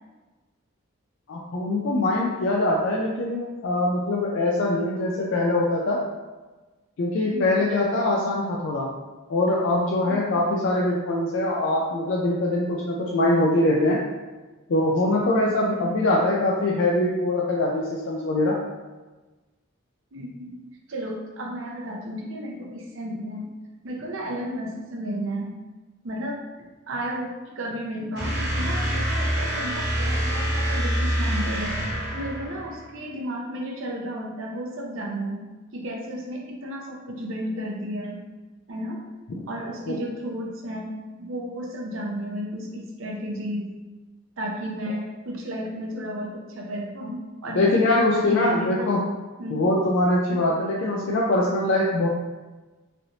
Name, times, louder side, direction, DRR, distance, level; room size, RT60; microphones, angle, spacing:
voice 1, 1.3-6.0 7.0-8.9 9.3-14.0 14.7-18.6 39.3-39.5 39.9-40.0 47.5-49.0 49.5-52.1, left 2 dB, 65° left, -3 dB, 0.4 m, -23 dB
voice 2, 7.2-7.6 10.0-10.4 15.4-15.9 20.1-20.6 20.9-23.5 23.8-25.5 26.0-26.4 26.9-35.5 35.7-38.2 38.7-39.0 39.5-43.7 44.4-49.0 49.4-49.6 50.3-50.4, equal, 70° right, -1 dB, 0.6 m, -33 dB
sound 1, 28.2-32.9, equal, 55° right, 0.9 m, -26 dB
3.2 x 2.6 x 2.8 m, 1.2 s
head